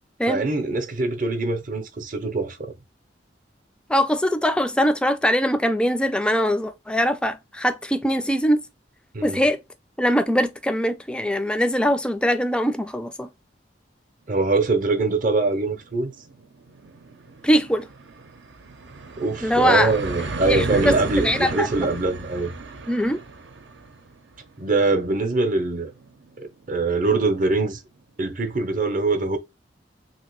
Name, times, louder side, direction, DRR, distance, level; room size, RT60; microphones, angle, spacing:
voice 1, 0.3-2.7 9.1-9.4 14.3-16.1 19.2-22.5 24.6-25.9 26.4-27.8 28.2-29.4, right 3 dB, 50° right, 0.7 m, -23 dB
voice 2, 3.9-8.6 9.2-9.6 10.0-13.3 17.4-17.9 19.4-19.9 20.5-21.7 22.9-23.2, equal, 5° left, 0.4 m, -22 dB
sound 1, 15.7-27.0, right 3 dB, 85° right, 0.7 m, -35 dB
3.2 x 2.8 x 3.0 m
head